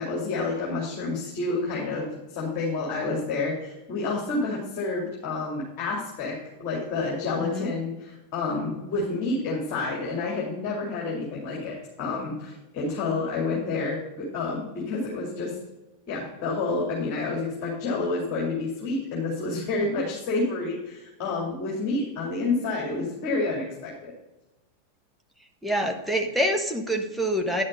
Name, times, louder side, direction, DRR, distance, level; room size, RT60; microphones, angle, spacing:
voice 1, 0.0-6.3 6.6-15.6 16.1-23.9, left 3 dB, 40° left, -3 dB, 2.6 m, -29 dB
voice 2, 25.6-27.6, equal, ahead, 3 dB, 1.2 m, -26 dB
10.0 x 6.4 x 5.1 m, 1.0 s
figure-of-eight pair, 90°, 0 cm